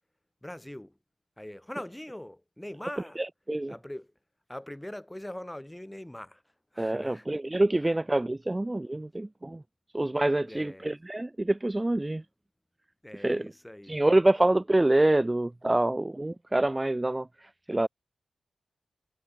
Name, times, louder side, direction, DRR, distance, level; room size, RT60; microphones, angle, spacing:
voice 1, 0.4-1.0 1.4-3.2 3.7-4.1 4.5-6.4 6.7-7.3 7.8-7.9 10.4-10.9 13.0-14.0, left 1 dB, 10° left, 1.8 m, -42 dB
voice 2, 3.2-3.7 6.8-9.6 9.9-12.2 13.1-13.5 13.9-17.9, right 1 dB, 15° right, 0.4 m, -26 dB
wide cardioid pair, 90°, 0 cm